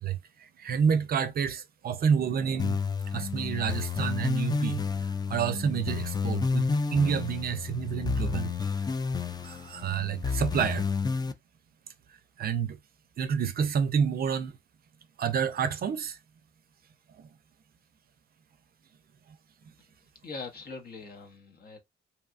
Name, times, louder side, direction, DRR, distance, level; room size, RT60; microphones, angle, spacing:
voice 1, 0.0-2.8 3.1-8.9 9.4-10.8 12.4-12.8 13.2-14.6 15.2-16.2 17.2-17.3, right 7 dB, 50° right, 0.5 m, -29 dB
sound 1, 2.6-11.3, left 5 dB, 20° left, 0.4 m, -30 dB
voice 2, 20.2-21.8, left 4 dB, 50° left, 0.8 m, -42 dB
2.8 x 2.3 x 2.4 m
cardioid pair, 90°, 20 cm